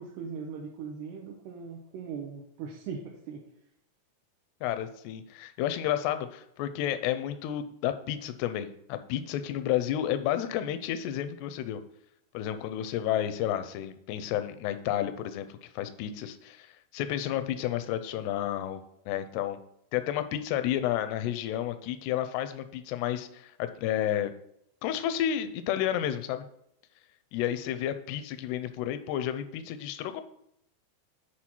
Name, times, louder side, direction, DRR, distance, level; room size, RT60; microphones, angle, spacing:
voice 1, 0.0-3.4, right 6 dB, 75° right, -1 dB, 2.7 m, -39 dB
voice 2, 4.6-11.8 12.3-16.7 16.9-19.6 19.9-24.3 24.8-26.5 27.3-30.2, left 11 dB, 80° left, 10 dB, 2.5 m, -31 dB
8.5 x 4.5 x 4.4 m, 0.75 s
omnidirectional pair, 5.1 m